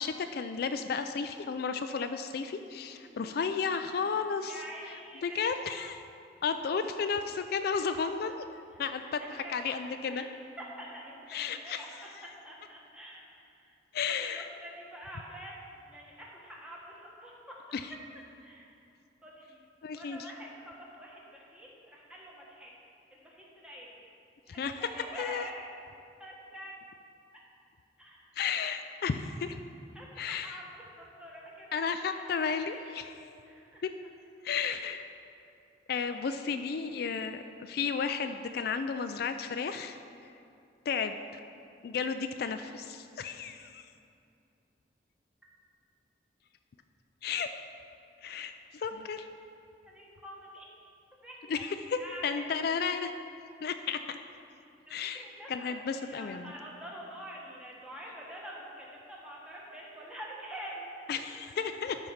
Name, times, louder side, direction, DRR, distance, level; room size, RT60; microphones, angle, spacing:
voice 1, 0.0-4.6 5.2-6.0 6.4-8.3 8.8-10.2 11.3-12.3 13.9-14.5 17.7-17.9 19.8-20.3 24.5-24.9 25.2-25.5 28.4-29.6 30.2-30.6 31.7-33.2 33.8-33.9 34.4-35.1 35.9-40.0 40.9-41.2 41.8-43.8 47.2-47.5 48.2-49.3 51.5-53.1 53.6-54.2 54.9-56.5 61.1-62.0, left 6 dB, 60° left, 8 dB, 0.3 m, -33 dB
voice 2, 4.4-5.8 8.7-8.8 9.2-9.5 10.1-10.3 10.6-11.9 12.2-13.7 14.4-17.0 17.2-17.6 18.4-18.7 19.2-19.6 19.9-22.7 23.1-23.9 24.5-25.6 26.2-26.7 28.0-28.2 29.9-30.6 31.0-32.9 33.5-33.8 36.2-36.4 49.8-50.7 51.2-51.7 52.0-52.7 54.6-60.9 61.4-61.5, equal, 5° right, -4 dB, 1.4 m, -46 dB
12.0 x 4.5 x 5.6 m, 2.6 s
head